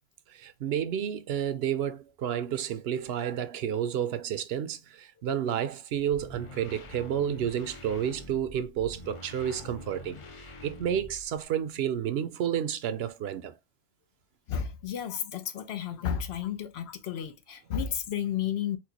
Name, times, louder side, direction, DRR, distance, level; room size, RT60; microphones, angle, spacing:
voice 1, 0.3-10.2 10.6-13.5, right 9 dB, 80° right, 0.8 m, -30 dB
sound 1, 6.1-11.4, left 2 dB, 40° left, 0.5 m, -46 dB
voice 2, 14.5-18.8, left 9 dB, 90° left, 0.9 m, -32 dB
4.4 x 2.2 x 2.8 m
omnidirectional pair, 1.0 m